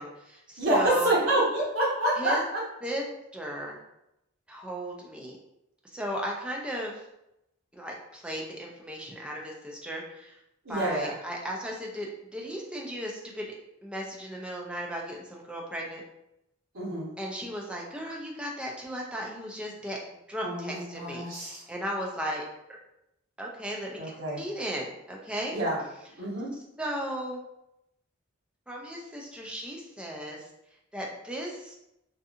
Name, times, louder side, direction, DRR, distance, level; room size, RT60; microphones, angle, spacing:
voice 1, 0.0-1.1 2.2-2.4 2.8-3.0 3.3-3.8 4.5-5.4 5.9-7.0 7.7-10.4 10.7-13.5 13.8-16.0 17.2-20.0 20.3-22.4 23.4-25.5 26.8-27.4 28.7-30.5 30.9-31.7, equal, 5° right, -2 dB, 0.4 m, -36 dB
voice 2, 0.6-2.6 10.6-11.1 16.7-17.1 20.4-21.6 24.0-24.4 25.5-25.8 26.2-26.5, right 1 dB, 80° right, -7 dB, 1.2 m, -27 dB
2.6 x 2.5 x 2.4 m, 0.86 s
head